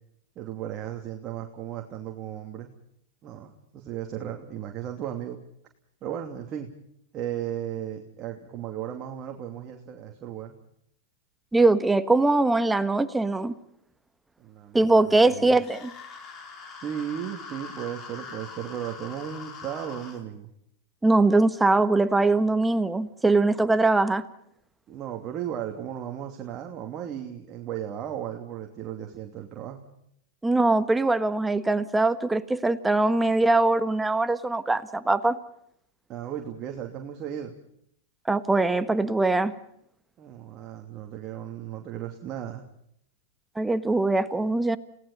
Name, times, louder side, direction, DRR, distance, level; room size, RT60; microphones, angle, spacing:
voice 1, 0.4-2.7 3.2-5.4 6.0-6.7 7.1-10.6 14.4-15.5 16.7-20.5 24.9-29.9 36.1-37.6 40.2-42.7, right 10 dB, 35° right, 2 dB, 2.8 m, -35 dB
voice 2, 11.5-13.5 14.7-15.9 21.0-24.2 30.4-35.4 38.3-39.5 43.6-44.8, right 2 dB, 10° right, 12 dB, 1.4 m, -22 dB
sound 1, 15.6-20.2, left 5 dB, 30° left, 4.7 m, -42 dB
29.5 x 18.5 x 5.5 m, 0.72 s
hypercardioid pair, 110°, 0 cm